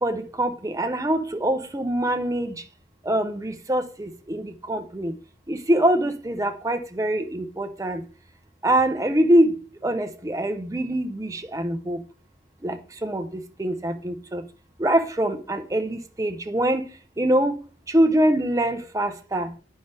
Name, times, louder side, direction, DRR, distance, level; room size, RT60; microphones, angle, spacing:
voice 1, 0.0-2.6 3.0-5.1 5.5-8.0 8.6-12.0 12.6-14.4 14.8-16.8 17.2-17.6 17.9-19.5, right 1 dB, 20° right, 0.6 m, -24 dB
9.2 x 5.4 x 3.3 m
head